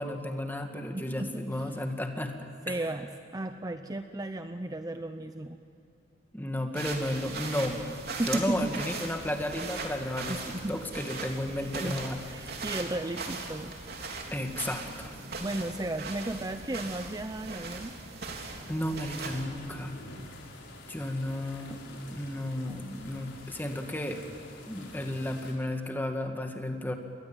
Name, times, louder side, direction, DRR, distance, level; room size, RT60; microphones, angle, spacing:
voice 1, 0.0-2.4 2.7-2.8 6.3-7.8 8.2-12.5 14.3-15.1 18.7-20.0 20.9-21.8 22.1-24.3 24.7-26.9, left 1 dB, 10° left, 4 dB, 2.2 m, -33 dB
voice 2, 0.9-1.7 2.7-5.6 8.2-8.7 10.3-12.0 12.2-13.8 15.4-17.9, right 1 dB, 20° right, 8 dB, 0.7 m, -35 dB
sound 1, 6.7-19.4, right 3 dB, 55° right, 3.5 m, -39 dB
sound 2, 19.1-25.5, left 2 dB, 75° left, 5.4 m, -47 dB
29.0 x 22.5 x 9.1 m, 2.6 s
head